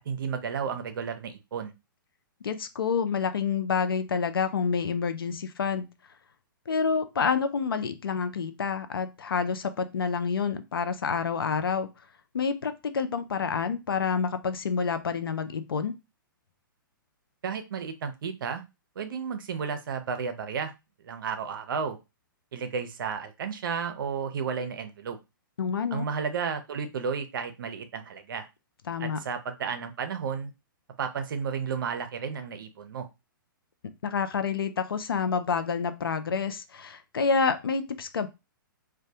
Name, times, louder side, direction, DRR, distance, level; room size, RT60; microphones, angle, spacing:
voice 1, 0.1-1.7 17.4-18.6 19.0-20.7 21.0-22.0 22.5-25.2 25.9-28.5 29.0-30.5 31.0-33.1, right 6 dB, 70° right, 8 dB, 0.5 m, -32 dB
voice 2, 2.4-5.9 6.7-11.9 12.3-15.9 25.6-26.1 28.9-29.2 34.0-38.3, left 5 dB, 90° left, 10 dB, 0.4 m, -28 dB
2.2 x 2.1 x 2.7 m, 0.25 s
hypercardioid pair, 130°, 12 cm